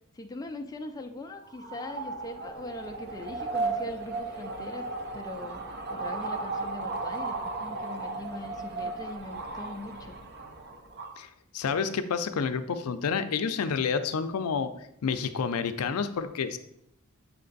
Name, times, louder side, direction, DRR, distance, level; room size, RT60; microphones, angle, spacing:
voice 1, 0.1-5.6 5.9-10.2, left 2 dB, 15° left, 3 dB, 0.3 m, -41 dB
sound 1, 1.5-11.2, right 3 dB, 50° right, 0.7 m, -35 dB
voice 2, 11.5-16.6, left 6 dB, 80° left, 9 dB, 0.5 m, -29 dB
7.3 x 3.3 x 3.9 m, 0.76 s
head